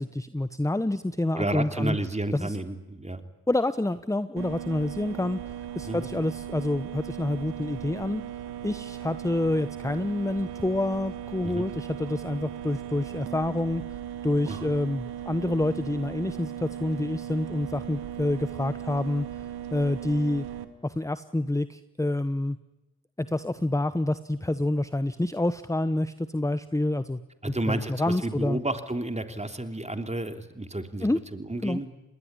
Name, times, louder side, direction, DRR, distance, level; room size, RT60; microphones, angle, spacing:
voice 1, 0.2-2.0 2.3-2.6 3.5-8.2 8.6-13.8 14.2-19.5 19.7-20.4 20.8-22.6 23.2-27.2 27.7-28.6 31.0-31.2 31.6-31.8, left 1 dB, 10° left, 13 dB, 1.0 m, -28 dB
voice 2, 1.3-3.2 5.9-6.1 11.4-11.7 14.5-14.7 27.4-31.9, right 2 dB, 15° right, 7 dB, 3.4 m, -31 dB
sound 1, 4.4-20.6, right 10 dB, 90° right, 1.6 m, -38 dB
27.0 x 20.5 x 9.9 m, 0.98 s
supercardioid pair, 40°, 38 cm